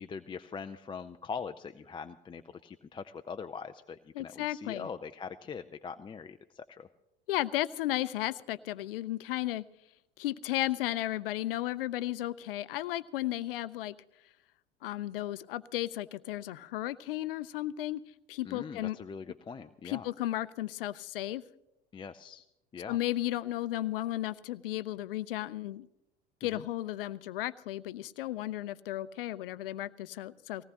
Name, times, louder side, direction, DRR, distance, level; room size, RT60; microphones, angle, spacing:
voice 1, 0.0-6.9 18.4-20.1 21.9-22.4 22.7-23.0 26.4-26.7, left 5 dB, 15° left, 7 dB, 0.5 m, -42 dB
voice 2, 4.2-4.9 7.3-9.6 10.2-14.0 14.8-18.0 18.3-19.0 19.9-21.4 22.9-25.9 26.4-30.6, left 15 dB, 70° left, 17 dB, 0.6 m, -34 dB
19.0 x 17.5 x 2.9 m, 0.87 s
figure-of-eight pair, 70°, 29 cm